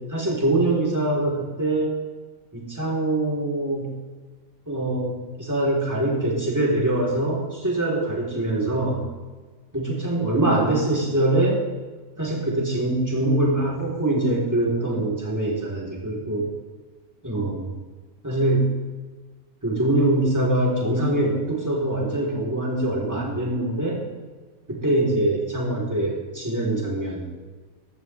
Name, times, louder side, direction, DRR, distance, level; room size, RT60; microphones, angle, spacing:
voice 1, 0.1-2.0 2.5-3.9 4.7-9.0 9.7-11.6 12.2-16.5 17.2-17.7 18.2-18.7 19.6-24.0 24.7-27.3, right 1 dB, 10° right, -4 dB, 3.8 m, -23 dB
16.0 x 12.0 x 3.5 m, 1.4 s
omnidirectional pair, 1.5 m